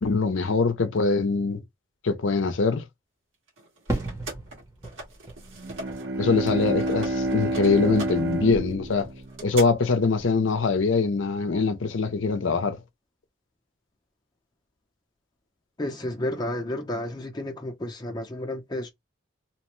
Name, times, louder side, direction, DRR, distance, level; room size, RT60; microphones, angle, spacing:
voice 1, 0.0-1.6 2.0-2.8 6.2-9.1 9.4-12.8, left 4 dB, 70° left, 0.6 m, -23 dB
sound 1, 3.5-6.1 6.3-9.7, right 2 dB, 75° right, 1.6 m, -41 dB
Fireworks, 3.9-8.2 8.5-9.3, right 2 dB, 15° right, 0.8 m, -37 dB
Bowed string instrument, 5.5-10.1, right 1 dB, 50° right, 0.6 m, -29 dB
voice 2, 15.8-18.9, left 1 dB, 20° left, 0.6 m, -31 dB
2.9 x 2.1 x 3.0 m
head